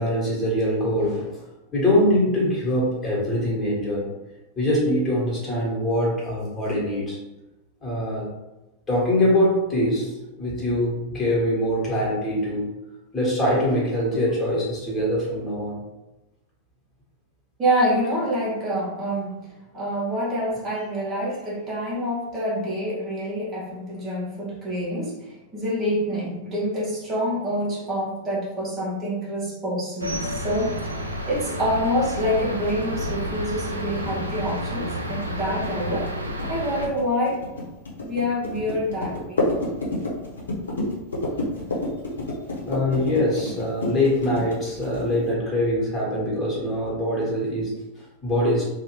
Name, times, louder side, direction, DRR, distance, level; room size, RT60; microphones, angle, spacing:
voice 1, 0.0-1.4 1.7-4.2 4.6-7.2 7.8-8.3 8.9-12.7 13.1-15.8 42.6-48.7, left 1 dB, 20° left, -5 dB, 1.1 m, -23 dB
voice 2, 17.6-30.8 31.3-36.1 36.5-37.4 38.0-39.4, equal, 25° right, -6 dB, 0.8 m, -26 dB
sound 1, 30.0-36.9, equal, 75° right, 0.4 m, -30 dB
sound 2, 31.5-45.3, left 2 dB, 70° left, 0.7 m, -30 dB
2.6 x 2.0 x 3.0 m, 1.0 s
figure-of-eight pair, 90°, 0 cm